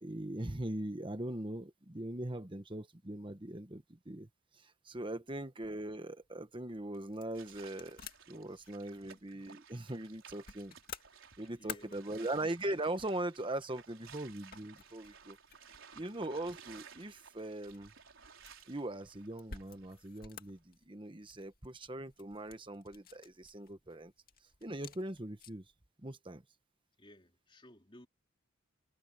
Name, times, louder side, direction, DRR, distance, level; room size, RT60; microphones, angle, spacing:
voice 1, 0.0-4.3 4.5-8.0 8.3-10.7 11.4-15.4 16.0-17.9 18.7-24.1 24.6-25.6 26.0-26.4, right 1 dB, 25° right, 1.2 m, -40 dB
sound 1, 6.2-25.7, left 7 dB, 45° left, 2.1 m, -55 dB
sound 2, 7.3-20.2, right 7 dB, 70° right, 4.5 m, -57 dB
voice 2, 8.4-9.3 11.4-12.2 15.9-16.3 27.0-28.1, left 1 dB, 25° left, 3.7 m, -60 dB
head